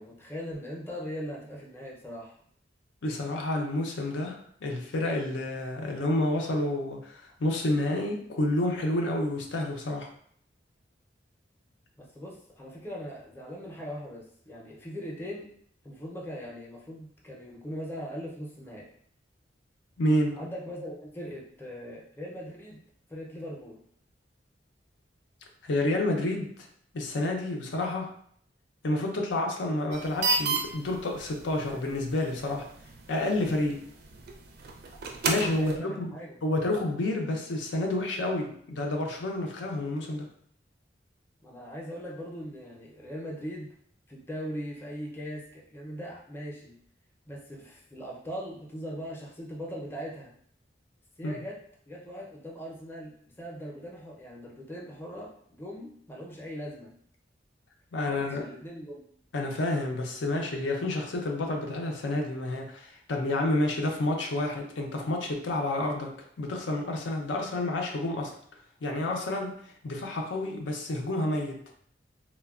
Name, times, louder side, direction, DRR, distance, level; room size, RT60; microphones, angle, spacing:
voice 1, 0.0-2.4 12.0-15.5 15.8-18.9 20.4-22.8 23.1-23.8 35.5-36.4 41.4-43.7 44.1-46.8 47.3-50.3 51.2-51.6 51.9-56.9 58.1-59.0, equal, 15° left, -3 dB, 0.5 m, -40 dB
voice 2, 3.0-10.1 20.0-20.4 25.6-26.5 26.9-28.1 28.8-32.7 33.1-33.8 35.3-36.1 36.4-40.3 51.2-51.4 57.9-58.4 59.3-68.3 68.8-69.6 69.8-71.6, left 1 dB, 90° left, 1 dB, 0.5 m, -29 dB
sound 1, 29.9-35.8, right 4 dB, 60° right, 0.4 m, -34 dB
3.2 x 2.1 x 2.3 m, 0.63 s
head